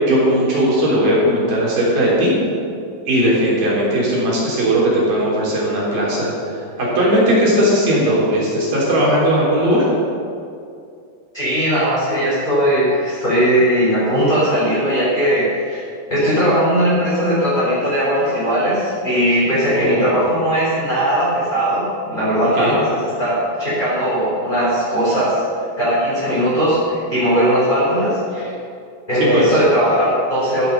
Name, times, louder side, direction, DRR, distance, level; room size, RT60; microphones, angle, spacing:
voice 1, 0.1-2.3 3.1-9.9 19.7-20.1 22.6-22.7 29.2-29.4, equal, 45° right, -5 dB, 5.3 m, -17 dB
voice 2, 11.3-15.8 16.1-25.4 25.8-28.5 29.1-30.7, equal, 10° left, -10 dB, 3.9 m, -18 dB
14.5 x 12.0 x 5.5 m, 2.4 s
omnidirectional pair, 5.5 m